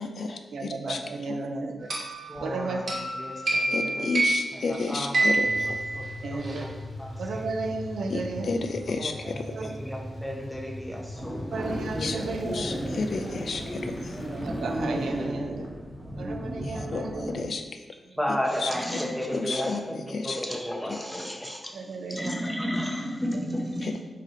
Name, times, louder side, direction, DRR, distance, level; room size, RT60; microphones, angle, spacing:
voice 1, 0.0-1.0 1.3-1.4 3.7-5.8 8.1-9.4 12.0-14.2 16.6-17.8 18.3-18.7 19.3-19.8 20.1-20.4 23.8-23.9, left 4 dB, 70° left, 6 dB, 0.4 m, -32 dB
voice 2, 0.5-1.9 2.4-2.8 3.4-3.5 4.0-4.1 6.2-6.6 7.2-8.5 9.5-9.7 11.5-12.6 14.3-15.7 16.2-17.4 21.8-22.3, right 3 dB, 85° right, 4 dB, 0.5 m, -33 dB
sound 1, 1.9-6.6, right 2 dB, 65° right, 1.1 m, -28 dB
voice 3, 2.2-4.0 4.5-5.3 5.6-7.8 9.0-11.5 18.1-21.8 22.1-24.0, equal, ahead, -1 dB, 0.8 m, -33 dB
sound 2, 5.3-16.5, left 1 dB, 45° left, 1.4 m, -41 dB
sound 3, 11.1-17.4, equal, 20° right, 1.1 m, -34 dB
4.8 x 2.8 x 3.8 m, 1.2 s
cardioid pair, 75°, 0 cm